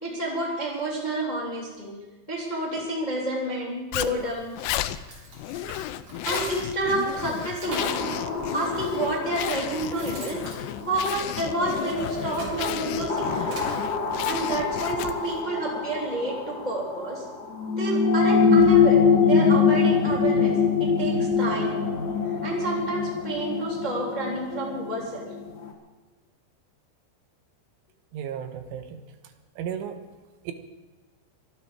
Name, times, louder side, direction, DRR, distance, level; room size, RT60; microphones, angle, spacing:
voice 1, 0.0-2.0 2.3-4.5 6.2-8.1 8.5-10.4 10.8-13.6 14.2-17.2 17.8-21.8 22.4-25.3, right 2 dB, 15° left, -3 dB, 1.4 m, -29 dB
Zipper (clothing), 3.9-15.4, left 13 dB, 85° left, 2.5 m, -33 dB
sound 1, 5.0-6.8 7.2-8.1 8.9-9.0 9.5-11.6 12.1-13.7, right 2 dB, 45° right, 5.1 m, -40 dB
sound 2, 7.7-25.7, left 5 dB, 65° left, 1.0 m, -25 dB
voice 2, 28.1-29.0 29.6-30.0 30.5-30.6, right 9 dB, 85° right, 7 dB, 3.6 m, -34 dB
24.5 x 9.6 x 5.0 m, 1.2 s
omnidirectional pair, 5.6 m